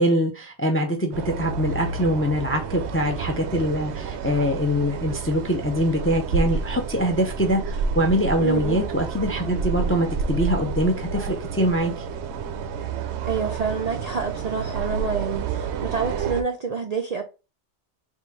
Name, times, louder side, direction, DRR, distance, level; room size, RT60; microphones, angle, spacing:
voice 1, 0.0-12.0, equal, 20° left, 0.4 m, -23 dB
sound 1, 1.1-16.4, right 5 dB, 70° right, 0.8 m, -30 dB
voice 2, 8.4-8.8 13.3-17.2, right 5 dB, 55° right, 0.4 m, -27 dB
3.6 x 2.5 x 4.4 m
omnidirectional pair, 1.2 m